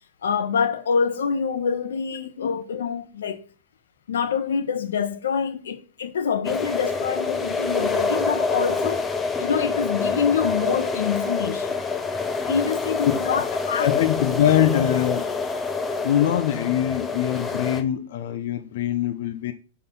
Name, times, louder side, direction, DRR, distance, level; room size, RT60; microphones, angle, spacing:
voice 1, 0.2-3.4 4.1-9.1 9.4-11.7 12.5-14.0, left 6 dB, 90° left, 1.1 m, -26 dB
sound 1, 6.4-17.8, left 4 dB, 10° left, 0.6 m, -26 dB
voice 2, 13.0-13.4 13.7-15.3 16.0-19.5, left 11 dB, 55° left, 0.6 m, -23 dB
6.4 x 3.8 x 5.4 m
supercardioid pair, 160°, 0 cm